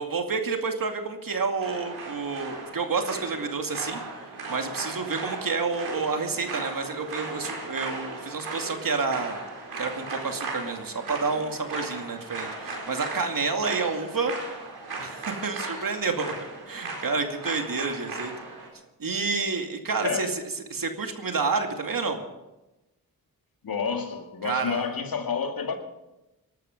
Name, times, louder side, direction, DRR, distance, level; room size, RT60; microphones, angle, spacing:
voice 1, 0.0-4.0 4.5-9.4 9.8-14.4 15.0-16.3 16.7-18.3 19.0-20.4 20.7-22.2 24.4-24.8, right 4 dB, 60° right, 2.4 m, -29 dB
sound 1, 1.6-18.7, right 3 dB, 80° right, 4.7 m, -37 dB
voice 2, 23.6-25.8, left 6 dB, 65° left, 2.2 m, -29 dB
20.0 x 12.5 x 5.2 m
cardioid pair, 50°, 38 cm